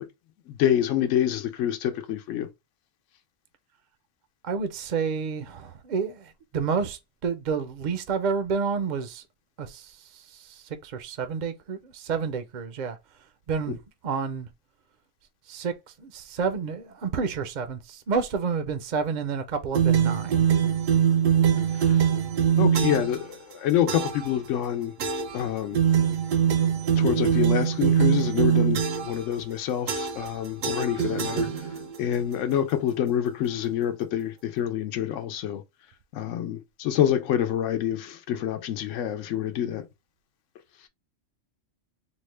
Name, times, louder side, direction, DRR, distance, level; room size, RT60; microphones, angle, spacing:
voice 1, 0.5-2.5 13.7-13.8 21.7-22.0 22.6-25.0 25.3-25.8 27.0-31.5 32.0-35.6 36.1-39.8, left 10 dB, 80° left, 1.0 m, -27 dB
voice 2, 4.4-9.2 9.6-13.0 13.5-13.8 14.0-14.5 15.5-20.5, right 5 dB, 50° right, 0.5 m, -30 dB
sound 1, 19.7-23.2 23.9-24.3 25.0-25.4 25.7-29.2 29.9-30.3 30.6-32.0, right 8 dB, 80° right, 1.1 m, -23 dB
4.0 x 2.1 x 3.1 m
omnidirectional pair, 1.3 m